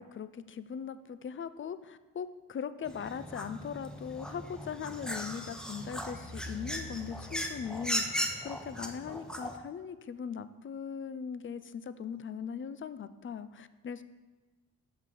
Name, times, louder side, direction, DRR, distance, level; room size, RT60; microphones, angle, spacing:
voice 1, 0.0-14.0, left 7 dB, 30° left, 13 dB, 0.4 m, -40 dB
sound 1, 2.9-9.6, equal, ahead, 0.8 m, -38 dB
6.6 x 5.7 x 3.8 m, 1.2 s
supercardioid pair, 45°, 40 cm